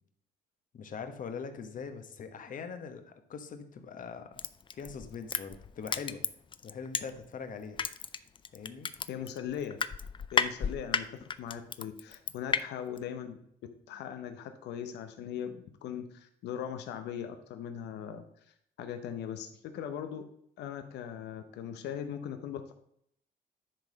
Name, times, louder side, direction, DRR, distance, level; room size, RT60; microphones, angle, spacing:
voice 1, 0.7-4.4 4.7-6.2 6.6-7.8 8.5-8.9, left 5 dB, 50° left, 8 dB, 1.1 m, -42 dB
Crushing, 4.4-7.4 7.8-12.6 13.0-13.1, left 6 dB, 30° left, 0.4 m, -32 dB
voice 2, 9.1-9.8 10.3-13.4 13.9-20.2 20.6-22.7, left 9 dB, 85° left, 8 dB, 0.8 m, -39 dB
10.5 x 4.0 x 5.1 m, 0.70 s
cardioid pair, 105°, 17 cm